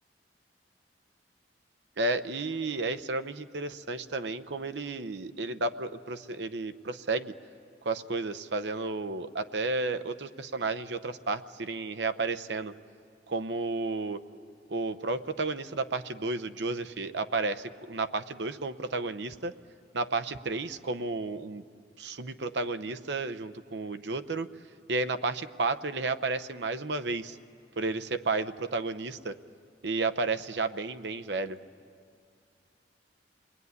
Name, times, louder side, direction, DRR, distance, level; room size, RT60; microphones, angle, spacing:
voice 1, 2.0-7.3 7.8-12.7 13.3-14.2 14.7-19.5 19.9-21.6 22.0-24.5 24.9-27.4 27.8-29.4 29.8-31.6, right 3 dB, 75° right, 10 dB, 0.8 m, -32 dB
27.5 x 21.5 x 9.6 m, 2.3 s
head